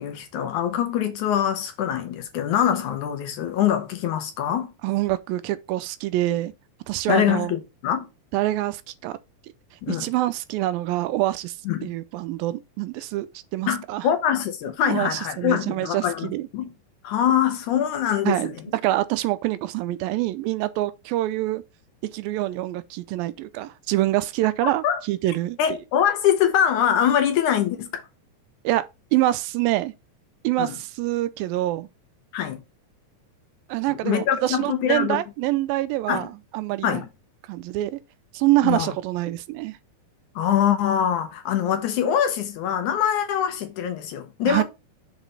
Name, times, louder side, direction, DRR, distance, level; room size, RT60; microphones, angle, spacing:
voice 1, 0.0-4.7 7.1-8.1 9.8-10.1 11.7-11.9 13.7-16.7 17.0-18.6 24.8-25.0 25.6-28.0 30.6-30.8 32.3-32.6 33.9-35.2 36.1-36.3 36.8-37.1 38.6-38.9 40.4-44.6, left 9 dB, 70° left, 2.2 m, -23 dB
voice 2, 4.8-6.5 6.9-7.5 8.3-9.2 9.9-11.5 11.8-14.1 14.8-16.5 18.3-21.6 22.1-25.6 28.6-29.9 30.4-31.9 33.7-37.0 37.5-38.0 38.3-39.8 44.5-44.6, right 16 dB, 85° right, 2.4 m, -25 dB
7.0 x 4.1 x 5.4 m
omnidirectional pair, 4.1 m